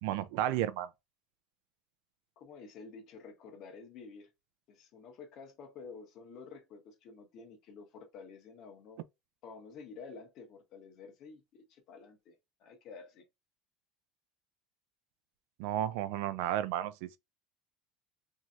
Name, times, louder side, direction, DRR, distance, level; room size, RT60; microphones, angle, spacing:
voice 1, 0.0-0.9 15.6-17.2, right 12 dB, 70° right, 0.3 m, -32 dB
voice 2, 2.4-4.3 4.7-9.0 9.4-13.3, left 5 dB, 45° left, 0.9 m, -50 dB
3.2 x 2.7 x 2.4 m
cardioid pair, 165°, 0 cm